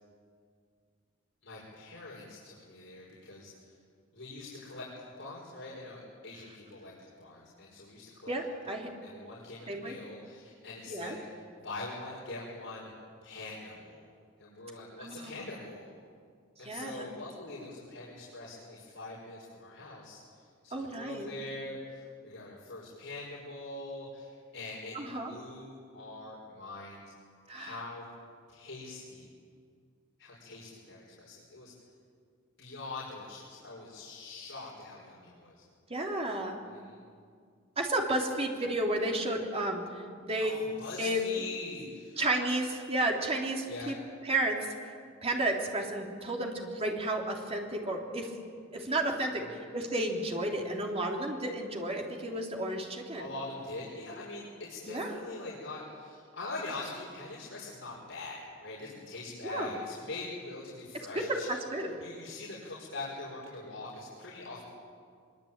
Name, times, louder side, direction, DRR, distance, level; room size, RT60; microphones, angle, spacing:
voice 1, 1.4-3.5 4.1-4.9 5.2-6.9 7.2-8.3 8.6-8.8 9.0-11.2 11.6-12.9 13.2-14.1 14.4-15.9 16.6-20.2 20.6-27.1 27.5-28.1 28.5-29.3 30.2-31.7 32.6-35.6 36.7-37.0 40.4-42.2 43.6-44.0 53.2-61.5 62.0-64.6, left 2 dB, 65° left, -5 dB, 5.4 m, -43 dB
voice 2, 8.3-8.9 9.7-10.0 10.9-11.2 15.0-15.5 16.6-17.1 20.7-21.3 24.9-25.3 27.5-27.8 35.9-36.6 37.8-39.8 40.2-40.6 41.0-41.2 42.2-44.0 44.2-45.0 45.2-48.3 48.7-53.3 54.8-55.1 59.4-59.8 61.1-61.2 61.5-62.0, right 1 dB, 30° right, 0 dB, 3.4 m, -32 dB
25.0 x 23.0 x 9.0 m, 2.1 s
head